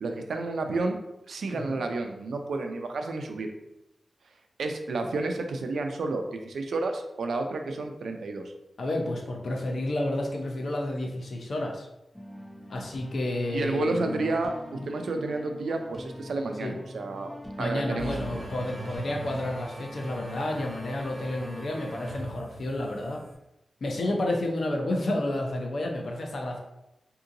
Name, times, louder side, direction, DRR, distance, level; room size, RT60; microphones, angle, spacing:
voice 1, 0.0-1.0 1.3-3.5 4.6-8.4 13.5-17.3 17.6-18.4 24.0-24.1, right 3 dB, 90° right, 5 dB, 0.4 m, -31 dB
voice 2, 1.5-1.9 8.8-11.9 12.7-14.3 16.6-16.7 17.6-23.2 23.8-26.6, left 1 dB, 65° left, 1 dB, 0.6 m, -30 dB
sound 1, 12.1-19.5, left 1 dB, 10° left, 0.5 m, -44 dB
sound 2, 18.0-23.3, right 2 dB, 40° right, 1.1 m, -41 dB
3.6 x 2.8 x 2.5 m, 0.89 s
wide cardioid pair, 125°, 0 cm